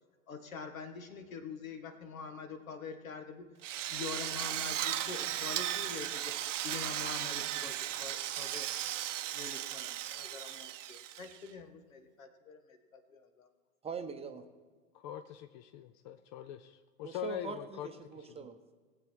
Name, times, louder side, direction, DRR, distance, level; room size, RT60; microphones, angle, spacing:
voice 1, 0.3-3.5 3.9-6.3 6.6-8.7 9.3-12.6 12.9-13.5, left 5 dB, 70° left, 7 dB, 1.7 m, -45 dB
Drill, 3.6-11.5, right 12 dB, 60° right, 0.8 m, -36 dB
voice 2, 13.8-14.4 17.0-18.7, right 5 dB, 15° right, 6 dB, 0.8 m, -42 dB
voice 3, 14.9-17.9 18.1-18.5, left 12 dB, 35° left, 9 dB, 0.5 m, -43 dB
18.5 x 7.8 x 4.6 m, 1.5 s
figure-of-eight pair, 100°, 41 cm